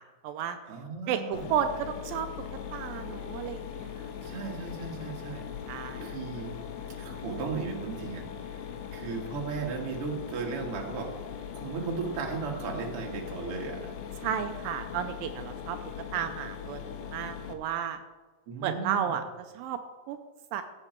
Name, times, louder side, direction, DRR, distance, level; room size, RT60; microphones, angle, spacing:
voice 1, 0.0-0.6 1.1-2.3 2.7-4.3 5.7-6.1 14.2-15.8 16.1-18.0 18.6-19.2 19.5-19.8 20.1-20.2 20.5-20.6, right 9 dB, 85° right, 7 dB, 2.4 m, -33 dB
voice 2, 0.7-1.5 4.2-5.4 6.0-6.5 7.0-8.2 8.5-8.6 8.9-11.1 11.5-13.9 18.5-19.2, right 5 dB, 45° right, 1 dB, 2.4 m, -36 dB
Mechanisms, 1.3-17.5, left 8 dB, 65° left, 1.8 m, -40 dB
15.5 x 9.0 x 4.5 m, 1.3 s
omnidirectional pair, 4.1 m